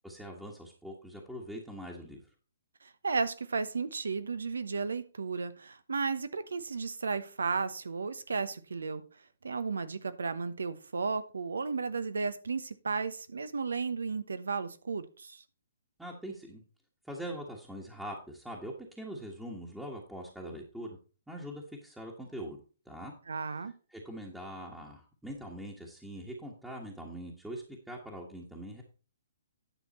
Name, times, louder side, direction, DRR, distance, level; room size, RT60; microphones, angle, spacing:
voice 1, 0.0-2.2 16.0-16.6 17.0-21.0 21.3-22.6 22.8-23.1 23.9-28.8, equal, 5° right, 1.4 m, -42 dB
voice 2, 2.8-9.0 9.4-15.4 23.3-23.7, right 4 dB, 75° right, 0.9 m, -34 dB
10.5 x 6.1 x 4.2 m
figure-of-eight pair, 130°, 0 cm